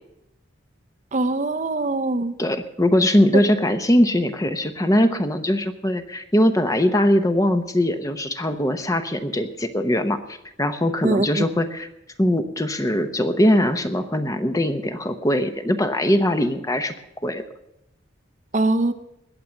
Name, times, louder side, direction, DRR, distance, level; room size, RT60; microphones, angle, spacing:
voice 1, 1.1-2.4 11.0-11.4 18.5-18.9, right 2 dB, 40° right, 10 dB, 0.7 m, -22 dB
voice 2, 2.4-11.9 12.2-16.9 17.2-17.4, left 1 dB, 15° left, 8 dB, 0.8 m, -21 dB
20.5 x 7.7 x 7.1 m, 0.85 s
head